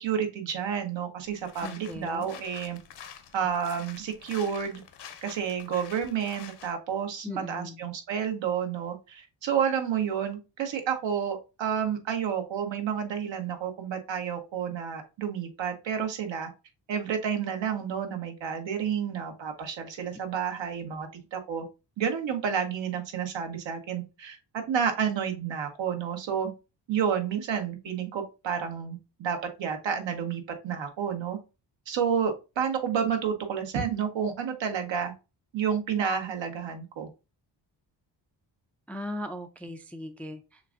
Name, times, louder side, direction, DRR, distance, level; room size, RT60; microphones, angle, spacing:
voice 1, 0.0-2.8 3.3-4.8 5.2-16.5 16.9-21.6 22.0-26.5 26.9-31.4 31.9-35.1 35.5-37.1, right 7 dB, 75° right, 5 dB, 1.2 m, -30 dB
sound 1, 1.2-6.7, left 8 dB, 65° left, 0.8 m, -47 dB
voice 2, 1.6-2.3 7.2-7.8 38.9-40.6, left 1 dB, 5° left, 7 dB, 0.3 m, -38 dB
6.6 x 2.6 x 2.5 m, 0.28 s
cardioid pair, 115°, 44 cm